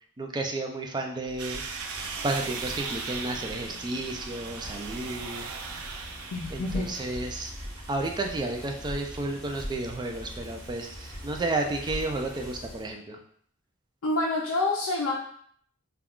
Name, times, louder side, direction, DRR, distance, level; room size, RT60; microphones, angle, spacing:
voice 1, 0.2-1.6 2.2-5.5 6.5-7.5 7.9-13.2, right 2 dB, 20° right, 3 dB, 0.3 m, -32 dB
Bicycle, 1.2-12.9, equal, 5° left, 0.7 m, -42 dB
sound 1, 1.4-12.5, right 5 dB, 90° right, 0.4 m, -40 dB
voice 2, 6.3-6.9 14.0-15.1, left 2 dB, 75° left, -2 dB, 0.5 m, -27 dB
2.3 x 2.3 x 3.5 m, 0.63 s
head